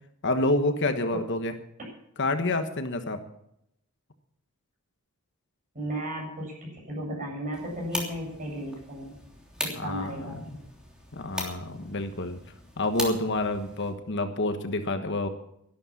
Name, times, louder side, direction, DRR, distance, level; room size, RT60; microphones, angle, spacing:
voice 1, 0.2-1.5 2.2-3.2 9.8-10.4 11.1-12.4 12.8-15.3, left 2 dB, 55° left, 8 dB, 1.3 m, -28 dB
voice 2, 5.7-9.1 9.6-10.6, equal, 35° right, -2 dB, 7.7 m, -35 dB
sound 1, 7.5-13.9, equal, 5° right, 3.1 m, -39 dB
12.5 x 12.0 x 7.2 m, 0.77 s
head